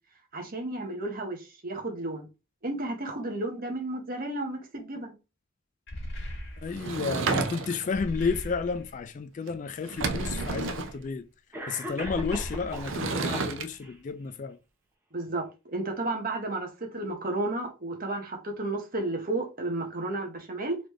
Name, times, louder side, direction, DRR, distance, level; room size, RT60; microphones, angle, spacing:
voice 1, 0.3-2.3 2.6-5.1 15.1-15.5 15.7-20.8, right 2 dB, 45° right, 1.2 m, -32 dB
sound 1, 5.9-7.0 7.9-9.0 10.0-11.1 12.0-13.1, equal, 60° left, 1.8 m, -38 dB
voice 2, 6.6-11.3 11.7-14.6, left 5 dB, 40° left, 0.3 m, -32 dB
Sliding door / Wood, 6.7-8.0 9.5-9.6 9.8-10.9 12.7-13.7, right 4 dB, 70° right, 0.5 m, -31 dB
Cough, 9.8-9.9 10.9-11.0 11.5-13.0 13.3-13.9, equal, 10° right, 1.0 m, -38 dB
4.0 x 3.3 x 3.2 m
head